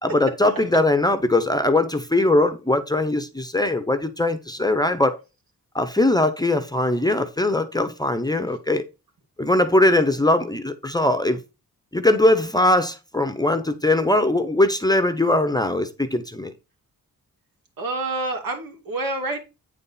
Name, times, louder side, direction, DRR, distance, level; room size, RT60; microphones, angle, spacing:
voice 1, 0.0-5.2 5.7-8.8 9.4-11.4 11.9-16.5, left 1 dB, 10° left, 0.7 m, -20 dB
voice 2, 17.8-19.4, right 2 dB, 75° right, 2.9 m, -27 dB
9.0 x 4.2 x 5.4 m
wide cardioid pair, 145°, 35 cm